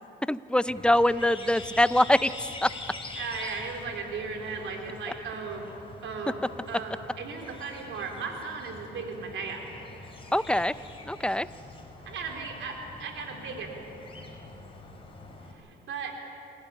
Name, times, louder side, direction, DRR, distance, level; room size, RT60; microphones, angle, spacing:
voice 1, 0.3-2.7 10.3-10.7 11.1-11.5, left 1 dB, 5° left, 15 dB, 0.6 m, -24 dB
sound 1, 0.7-15.5, left 2 dB, 25° left, 4.9 m, -45 dB
voice 2, 3.2-5.7 6.0-6.4 6.7-9.7 12.1-13.7 15.5-16.1, right 5 dB, 75° right, 2 dB, 3.9 m, -36 dB
26.5 x 15.0 x 9.7 m, 3.0 s
cardioid pair, 90°, 20 cm